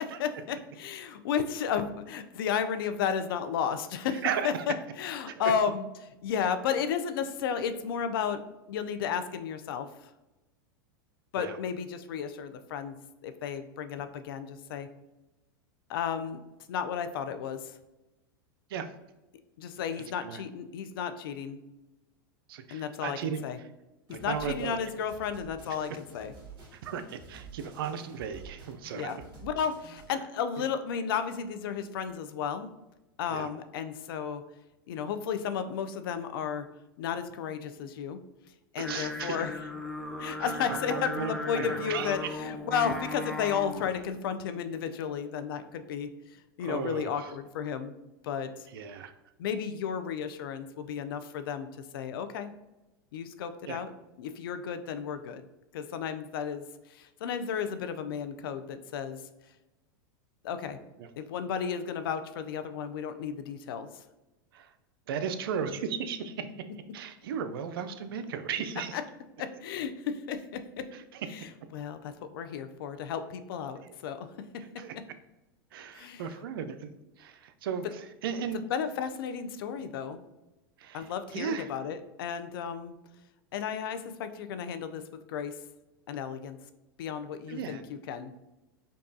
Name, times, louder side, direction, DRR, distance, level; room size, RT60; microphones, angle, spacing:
voice 1, 0.0-8.4 8.7-10.1 11.3-14.9 15.9-16.4 16.7-17.8 19.6-21.6 22.7-23.6 24.1-26.3 28.9-32.7 33.2-34.4 34.9-36.7 37.0-38.2 38.7-39.5 40.2-47.9 48.2-48.7 49.4-52.5 53.1-53.9 54.2-55.5 55.7-59.2 60.4-60.8 61.2-64.0 68.9-69.0 69.4-70.9 71.3-74.3 75.9-76.4 78.5-80.2 80.9-82.9 83.5-85.6 86.1-86.6 87.0-88.3, left 7 dB, 75° left, 10 dB, 0.4 m, -33 dB
voice 2, 4.2-4.7 5.3-5.4 11.4-11.6 18.7-18.9 20.2-20.4 22.5-23.4 24.1-24.8 25.7-25.9 26.7-29.1 33.3-33.5 38.8-39.5 40.7-42.3 46.6-47.3 48.7-49.1 53.7-53.8 61.0-61.1 64.5-64.7 65.1-66.5 66.9-69.0 70.9-71.2 74.8-74.9 75.7-77.9 78.2-78.6 80.8-81.1 81.3-81.7 87.5-87.9, right 7 dB, 80° right, 9 dB, 0.4 m, -35 dB
sound 1, 24.1-30.1, right 4 dB, 40° right, 1.4 m, -50 dB
Singing, 38.8-44.0, left 2 dB, ahead, 0.5 m, -37 dB
5.2 x 2.3 x 2.6 m, 1.0 s
hypercardioid pair, 120°, 12 cm